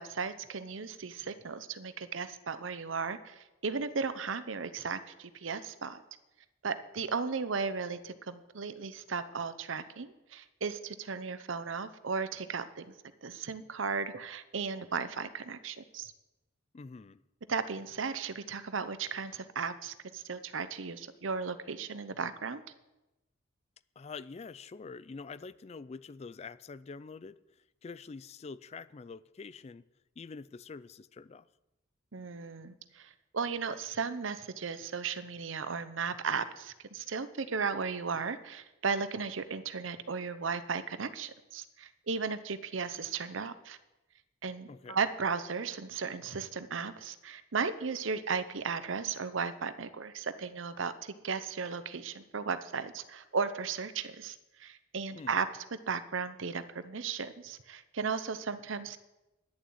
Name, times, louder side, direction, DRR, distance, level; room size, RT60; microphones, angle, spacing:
voice 1, 0.0-6.0 6.6-12.9 13.2-16.1 17.5-22.6 32.1-43.8 44.4-55.5 55.9-59.0, right 5 dB, 75° right, 0.8 m, -35 dB
voice 2, 16.7-17.2 24.0-27.4 27.8-29.9 30.2-31.5 44.7-45.0 55.1-55.4, left 4 dB, 30° left, 0.3 m, -46 dB
11.0 x 7.1 x 9.2 m
head